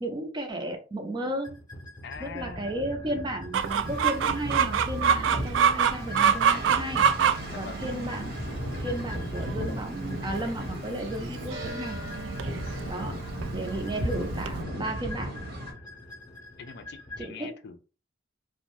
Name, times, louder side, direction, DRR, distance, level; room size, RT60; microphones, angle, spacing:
voice 1, 0.0-1.6 2.2-7.0 7.5-8.4 8.8-12.0 12.9-13.1 13.5-15.4 17.2-17.5, right 1 dB, 25° right, 4 dB, 0.5 m, -34 dB
sound 1, 1.4-17.3, left 1 dB, 25° left, 0.7 m, -44 dB
voice 2, 2.0-2.7 5.3-5.5 7.5-7.9 12.7-13.3 16.6-17.8, left 5 dB, 60° left, 8 dB, 0.4 m, -43 dB
Chicken rooster, 3.5-14.6, right 7 dB, 85° right, 0.3 m, -27 dB
sound 2, 3.8-15.7, equal, 55° right, 1.1 m, -36 dB
2.6 x 2.1 x 3.0 m, 0.35 s
head